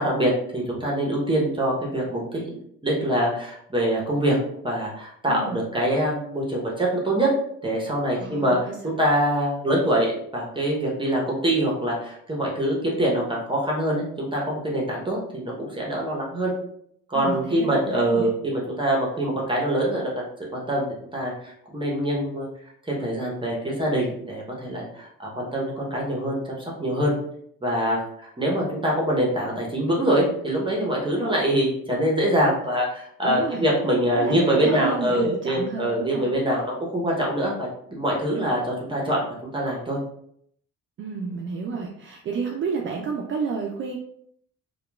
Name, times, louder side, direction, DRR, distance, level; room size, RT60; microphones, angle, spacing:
voice 1, 0.0-2.5 2.8-4.4 4.6-7.3 7.6-16.5 17.1-20.2 20.5-22.5 22.8-26.5 26.8-27.1 27.6-28.0 28.4-37.5 37.9-40.0, right 1 dB, 15° right, -3 dB, 0.7 m, -24 dB
voice 2, 5.3-5.6 8.2-9.0 17.1-18.3 33.2-33.7 34.1-36.3 41.0-44.0, right 5 dB, 40° right, 0 dB, 0.4 m, -31 dB
2.8 x 2.2 x 2.2 m, 0.69 s
cardioid pair, 90°, 30 cm